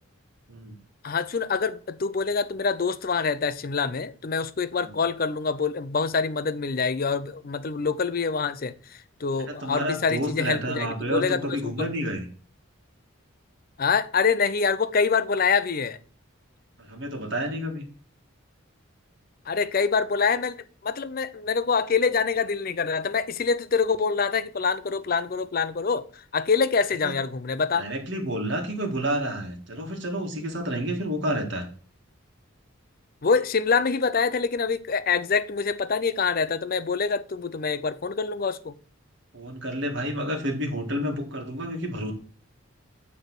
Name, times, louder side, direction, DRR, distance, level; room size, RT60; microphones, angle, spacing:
voice 1, 0.5-0.8 4.8-5.0 9.5-12.3 16.8-17.8 27.0-27.1 27.7-31.7 39.3-42.1, equal, 55° right, 1.7 m, -30 dB
voice 2, 1.0-8.7 9.2-11.9 13.8-16.0 19.5-20.6 20.8-27.9 33.2-38.8, left 5 dB, 40° left, 0.5 m, -25 dB
9.0 x 3.3 x 6.0 m
head